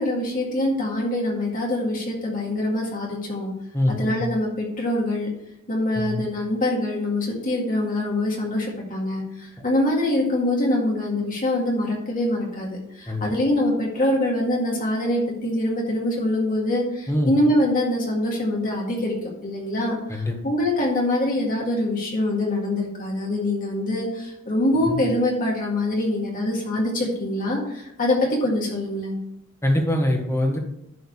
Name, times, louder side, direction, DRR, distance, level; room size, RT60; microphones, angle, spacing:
voice 1, 0.0-3.5 3.9-5.3 5.7-19.2 19.4-29.2, left 1 dB, 40° left, -2 dB, 2.0 m, -24 dB
voice 2, 3.7-4.2 5.9-6.2 13.1-13.2 17.1-17.3 20.1-20.3 24.9-25.0 29.6-30.6, left 1 dB, 15° left, 0 dB, 1.7 m, -23 dB
11.0 x 4.0 x 6.5 m, 0.83 s
head